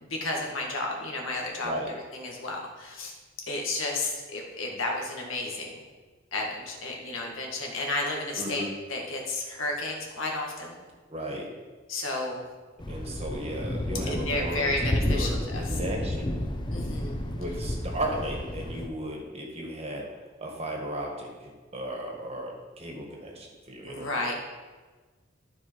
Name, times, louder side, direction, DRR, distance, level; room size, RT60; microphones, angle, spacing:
voice 1, 0.0-3.1 3.5-5.8 6.3-10.7 11.9-12.4 14.1-15.8 16.7-17.2 23.8-24.3, left 2 dB, 80° left, 0 dB, 1.7 m, -32 dB
voice 2, 8.4-8.7 11.1-11.5 12.9-14.6 15.0-16.4 17.3-20.1 20.4-24.2, right 1 dB, 30° right, 0 dB, 1.7 m, -35 dB
Thunder, 12.8-18.9, left 1 dB, 25° left, 0.6 m, -31 dB
13.0 x 4.8 x 4.5 m, 1.3 s
head